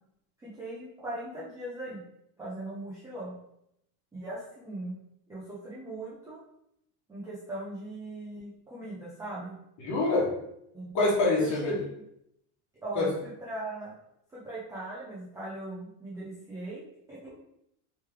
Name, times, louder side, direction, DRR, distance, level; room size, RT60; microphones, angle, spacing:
voice 1, 0.4-2.0 2.4-3.4 4.1-5.0 5.3-6.4 7.1-9.5 10.7-11.0 11.3-11.9 12.8-14.0 14.3-16.8 17.1-17.3, right 1 dB, 10° right, -9 dB, 0.3 m, -39 dB
voice 2, 9.8-10.3 10.9-11.7 13.0-13.1, left 2 dB, 35° left, -4 dB, 1.3 m, -25 dB
3.2 x 3.2 x 3.3 m, 0.77 s
cardioid pair, 160°, 48 cm